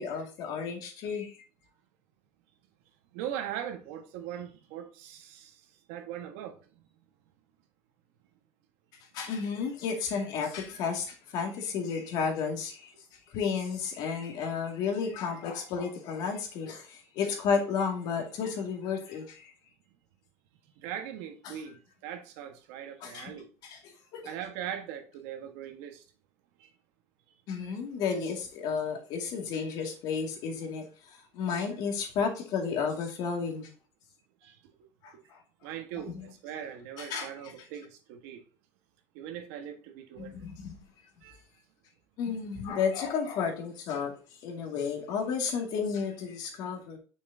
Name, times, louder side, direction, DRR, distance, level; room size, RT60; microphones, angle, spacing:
voice 1, 0.0-1.3 9.1-12.9 13.3-19.5 21.4-21.6 23.0-23.3 23.6-24.3 27.5-30.8 31.3-33.7 35.0-35.1 36.1-36.2 37.0-37.3 40.2-40.8 42.2-44.1 44.4-47.0, left 6 dB, 65° left, 2.2 m, -32 dB
voice 2, 3.1-5.6 5.9-6.6 20.8-23.5 24.2-26.0 26.6-26.7 34.4-34.6 35.6-38.4 39.1-40.5 41.2-41.4, right 10 dB, 80° right, 1.4 m, -40 dB
6.4 x 6.3 x 2.7 m
supercardioid pair, 115°, 8 cm